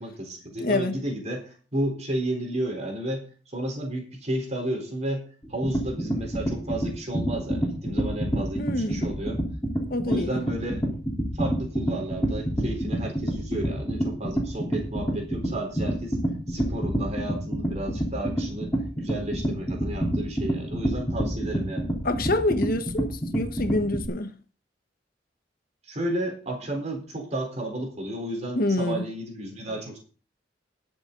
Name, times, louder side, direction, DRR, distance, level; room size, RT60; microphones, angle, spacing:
voice 1, 0.0-5.2 5.5-9.4 10.1-10.9 11.3-16.2 16.5-18.7 19.0-22.0 25.9-30.0, right 1 dB, 40° right, 4.1 m, -32 dB
voice 2, 0.6-0.9 8.6-9.0 9.9-10.4 22.0-24.3 28.5-29.0, left 2 dB, 55° left, 1.3 m, -26 dB
sound 1, 5.4-24.1, right 1 dB, 15° left, 3.7 m, -27 dB
21.0 x 7.1 x 4.0 m
head